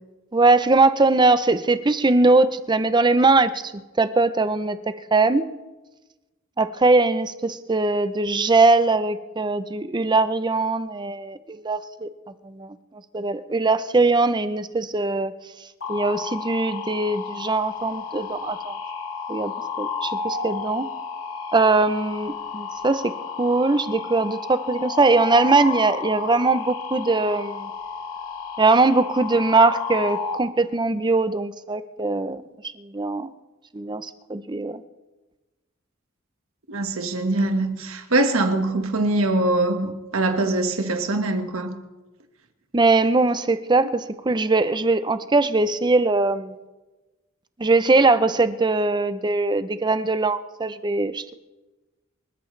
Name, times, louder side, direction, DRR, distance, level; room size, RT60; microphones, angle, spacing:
voice 1, 0.3-3.7 4.0-5.4 6.6-12.1 12.4-12.8 13.1-15.3 15.9-18.8 19.3-19.5 19.8-20.9 21.5-23.1 23.4-27.7 28.6-32.4 32.8-33.3 33.7-34.8 42.7-46.5 47.6-51.3, right 3 dB, 20° right, 0.6 m, -21 dB
sound 1, 15.8-30.4, left 5 dB, 85° left, 1.9 m, -32 dB
voice 2, 36.7-41.8, right 2 dB, 80° right, 1.5 m, -23 dB
27.0 x 13.5 x 3.3 m
head